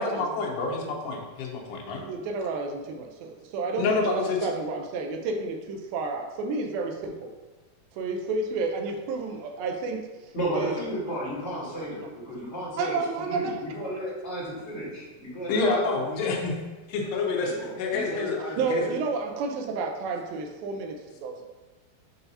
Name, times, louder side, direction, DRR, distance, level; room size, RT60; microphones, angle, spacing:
voice 1, 0.0-2.1 3.8-4.4 15.5-16.6 16.9-18.4 18.7-18.8, left 3 dB, 90° left, 1 dB, 3.0 m, -27 dB
voice 2, 2.0-7.3 8.0-10.1 10.5-10.8 12.8-13.6 18.6-21.4, right 4 dB, 80° right, 3 dB, 2.2 m, -31 dB
voice 3, 10.3-16.3 17.2-19.0, right 1 dB, 35° left, -9 dB, 1.0 m, -34 dB
7.9 x 2.7 x 5.4 m, 1.3 s
omnidirectional pair, 4.7 m